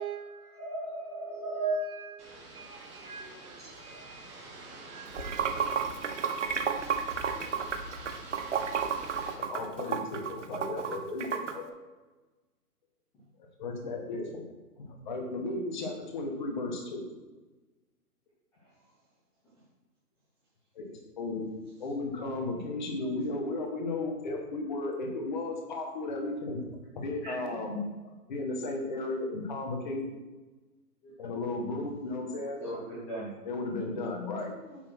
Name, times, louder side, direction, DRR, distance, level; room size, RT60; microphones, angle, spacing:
voice 1, 0.0-0.6 1.2-5.8, right 8 dB, 65° right, 3 dB, 1.4 m, -46 dB
voice 2, 0.6-1.8 6.8-6.9 27.2-27.3 31.0-31.1 32.6-33.3 34.7-34.8, right 2 dB, 5° left, -9 dB, 0.9 m, -35 dB
sound 1, 2.2-9.3, right 1 dB, 15° right, 2.0 m, -46 dB
Water / Sink (filling or washing), 5.1-11.5, right 7 dB, 50° right, 0.9 m, -31 dB
voice 3, 9.3-11.7 13.6-14.4 14.8-17.0 20.7-21.5 21.8-26.6 26.9-27.8 28.3-30.1 31.2-32.6 33.4-34.5, left 2 dB, 30° left, 1 dB, 1.2 m, -34 dB
8.6 x 4.2 x 6.0 m, 1.2 s
hypercardioid pair, 160°, 47 cm